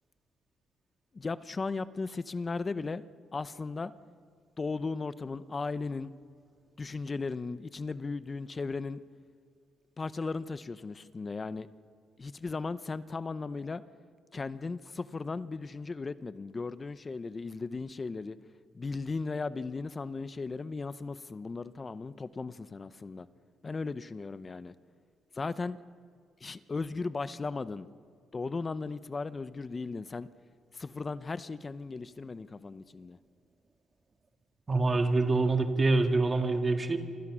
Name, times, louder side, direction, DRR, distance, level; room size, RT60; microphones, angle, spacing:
voice 1, 1.1-3.0 3.3-3.9 4.6-6.1 6.8-9.0 10.0-11.7 12.2-13.8 14.3-18.4 18.7-23.3 23.6-24.7 25.4-25.8 26.4-27.9 28.3-30.3 30.7-33.2, left 4 dB, 30° left, 14 dB, 0.8 m, -36 dB
voice 2, 34.7-37.0, right 3 dB, 30° right, 5 dB, 1.8 m, -25 dB
26.5 x 26.0 x 6.3 m, 2.1 s
cardioid pair, 90°, 0 cm